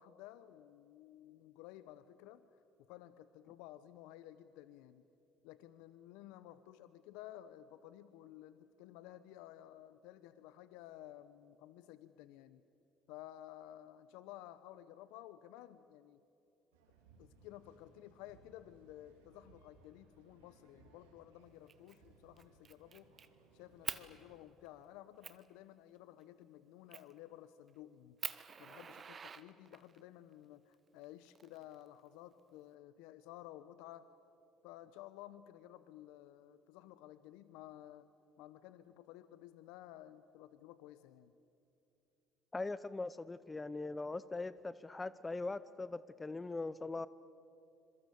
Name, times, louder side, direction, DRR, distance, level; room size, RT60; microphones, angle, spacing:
voice 1, 0.0-2.5 2.9-5.0 5.4-12.6 13.1-16.2 17.2-23.1 23.5-28.2 28.6-34.1 34.6-38.1 38.4-41.3, left 13 dB, 75° left, 14 dB, 0.8 m, -54 dB
sound 1, 16.7-24.4, right 3 dB, 85° right, 4.0 m, -66 dB
Fire, 21.7-22.0 22.4-23.3 23.8-24.0 24.6-24.7 25.2-25.4 26.9-27.2 27.7-27.8 28.2-30.0 31.0-32.0, right 6 dB, 40° right, 1.3 m, -45 dB
voice 2, 42.5-47.1, left 3 dB, 20° left, 17 dB, 0.8 m, -41 dB
26.0 x 23.0 x 8.4 m, 2.7 s
hypercardioid pair, 60°, 0 cm